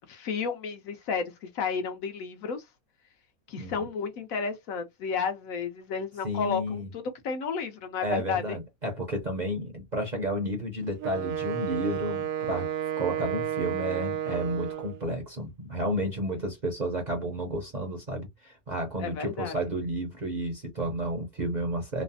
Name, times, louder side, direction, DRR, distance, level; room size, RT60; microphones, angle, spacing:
voice 1, 0.1-2.6 3.5-8.6 19.0-19.6, left 5 dB, 70° left, 1.1 m, -32 dB
voice 2, 6.2-6.9 8.0-12.7 13.0-22.0, right 1 dB, 40° right, 0.6 m, -31 dB
Wind instrument woodwind instrument, 11.0-15.0, right 10 dB, 70° right, 0.9 m, -31 dB
3.1 x 2.0 x 2.6 m
omnidirectional pair, 1.6 m